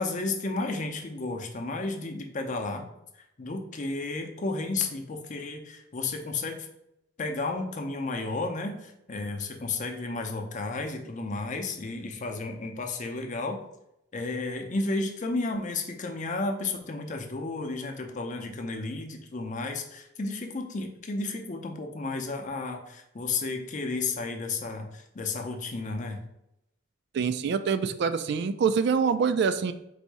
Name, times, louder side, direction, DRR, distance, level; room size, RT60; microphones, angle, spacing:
voice 1, 0.0-2.9 3.1-6.7 7.2-13.6 14.1-26.2, left 3 dB, 40° left, 4 dB, 0.6 m, -32 dB
voice 2, 27.1-29.7, right 6 dB, 60° right, 11 dB, 0.3 m, -25 dB
4.1 x 2.6 x 4.7 m, 0.82 s
head